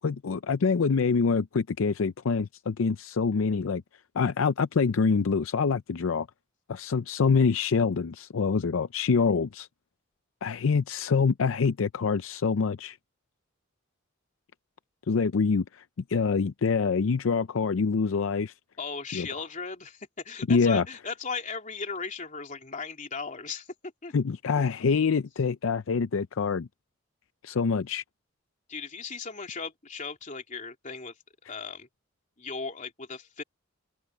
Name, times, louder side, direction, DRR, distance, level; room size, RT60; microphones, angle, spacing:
voice 1, 0.0-3.8 4.1-6.3 6.7-9.7 10.4-13.0 15.1-15.8 16.1-18.5 19.1-19.3 20.5-20.8 24.1-26.7 27.4-28.0, left 5 dB, 75° left, 0.5 m, -25 dB
voice 2, 18.8-23.7 24.0-24.1 28.7-31.1 31.5-31.9 32.4-33.4, left 5 dB, 40° left, 3.2 m, -37 dB
head